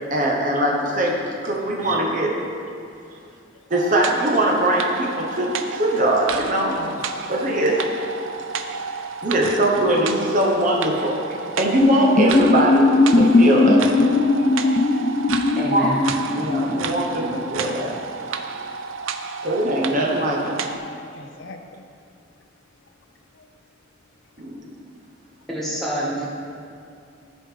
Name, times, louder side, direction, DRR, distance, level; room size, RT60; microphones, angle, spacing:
voice 1, 0.1-2.3 3.7-6.7 7.3-7.9 9.2-11.2 11.6-13.9 15.7-15.9 16.3-17.9 19.4-20.6 24.4-24.7, right 1 dB, 40° right, -1 dB, 1.1 m, -21 dB
voice 2, 3.3-3.7 6.7-7.2 8.2-8.4 9.0-9.1 14.2-15.0 15.4-15.5 18.5-18.7 19.2-19.4 20.9-21.9 22.8-22.9 23.3-23.5, left 2 dB, 70° left, 5 dB, 0.6 m, -44 dB
sound 1, 3.7-20.8, right 5 dB, 80° right, 0.5 m, -31 dB
sound 2, 11.8-17.4, left 3 dB, 30° left, 0.3 m, -18 dB
voice 3, 15.6-16.1 25.5-26.2, equal, ahead, -6 dB, 1.8 m, -26 dB
15.0 x 5.1 x 3.8 m, 2.5 s
head